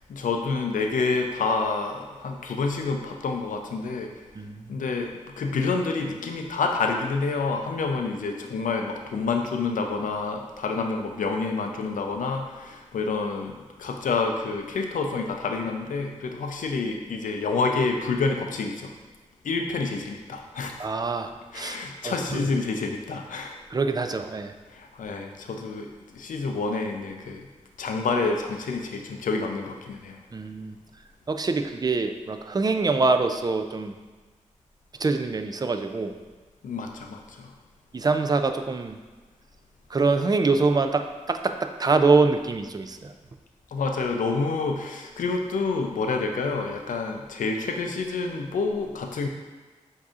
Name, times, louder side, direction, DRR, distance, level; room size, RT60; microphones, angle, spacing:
voice 1, 0.1-4.1 4.7-5.1 5.4-18.9 19.4-20.9 21.5-23.6 24.7-25.9 26.1-27.4 27.8-30.2 36.6-37.5 43.7-49.3, left 4 dB, 85° left, 3 dB, 0.5 m, -28 dB
voice 2, 20.8-21.8 22.0-22.5 23.7-24.5 30.3-30.7 31.3-33.9 35.0-36.1 37.9-39.0 39.9-41.5 41.8-43.1, right 3 dB, 30° right, 7 dB, 0.4 m, -24 dB
7.3 x 2.7 x 2.4 m, 1.3 s
cardioid pair, 55°, 13 cm